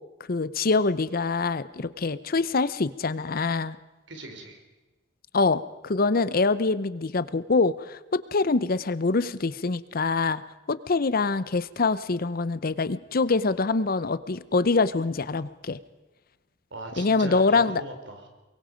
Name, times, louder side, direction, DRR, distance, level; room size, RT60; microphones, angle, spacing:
voice 1, 0.3-3.8 5.3-10.4 10.7-15.8 17.0-17.8, left 3 dB, 50° left, 16 dB, 0.7 m, -25 dB
voice 2, 4.1-4.6 16.7-18.3, right 2 dB, 85° right, 5 dB, 3.8 m, -39 dB
23.5 x 22.5 x 5.1 m, 1.1 s
head